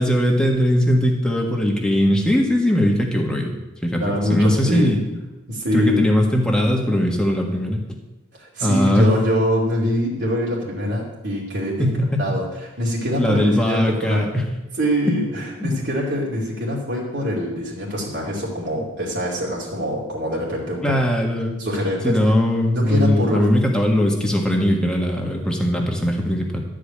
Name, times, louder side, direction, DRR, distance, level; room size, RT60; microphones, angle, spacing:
voice 1, 0.0-3.5 3.8-5.2 5.7-7.9 8.6-9.1 11.8-12.4 13.2-14.5 15.6-15.7 20.8-21.6 22.0-26.6, equal, 5° left, 0 dB, 1.6 m, -20 dB
voice 2, 4.0-4.9 5.5-6.0 8.3-11.9 12.2-14.4 14.8-21.0 21.6-22.3 22.7-23.5, left 1 dB, 65° right, -5 dB, 2.5 m, -24 dB
13.0 x 5.0 x 8.7 m, 1.0 s
head